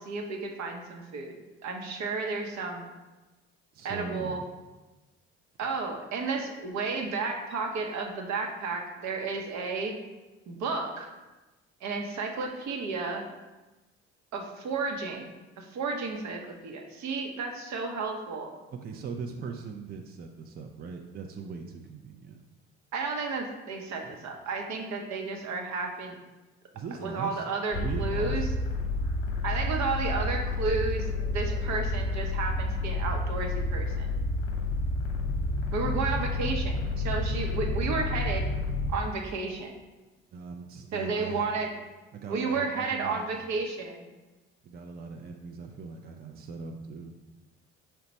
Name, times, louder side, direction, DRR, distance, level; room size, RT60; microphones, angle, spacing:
voice 1, 0.0-1.4 1.6-2.9 3.8-4.4 5.6-9.9 10.5-11.1 11.8-13.3 14.3-18.5 22.9-26.1 27.0-28.4 29.4-34.1 35.7-38.5 38.9-39.7 40.9-41.7 42.3-44.1, right 4 dB, 60° right, 2 dB, 0.8 m, -32 dB
voice 2, 3.7-4.5 18.7-22.4 24.0-24.3 26.7-27.4 27.7-28.4 40.3-41.4 42.1-43.3 44.6-47.2, right 5 dB, 30° right, 3 dB, 0.5 m, -40 dB
sound 1, 27.7-39.0, left 2 dB, 40° left, 0.9 m, -30 dB
5.7 x 2.2 x 4.0 m, 1.1 s
hypercardioid pair, 55°, 33 cm